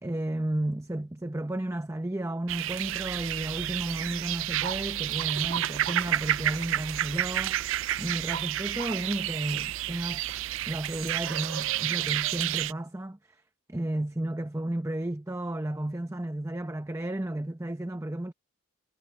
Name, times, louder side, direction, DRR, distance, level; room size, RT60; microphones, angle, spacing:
voice 1, 0.0-7.6 8.0-10.2 10.7-13.4 13.7-18.3, right 1 dB, 15° right, 0.7 m, -33 dB
sound 1, 2.5-12.7, right 13 dB, 65° right, 0.3 m, -30 dB
head